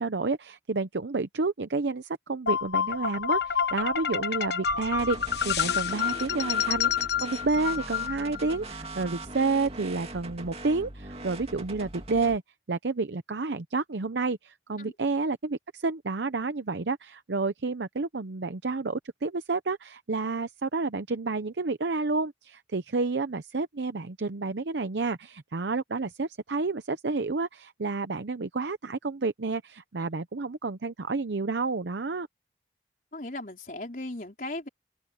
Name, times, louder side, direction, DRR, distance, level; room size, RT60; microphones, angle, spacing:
voice 1, 0.0-12.4 12.7-32.3, right 3 dB, 85° right, 0.7 m, -30 dB
sound 1, 2.5-8.6, left 7 dB, 70° left, 1.1 m, -28 dB
sound 2, 4.9-12.4, right 2 dB, 35° right, 2.6 m, -41 dB
voice 2, 33.1-34.7, left 2 dB, 50° left, 4.4 m, -37 dB
open air
head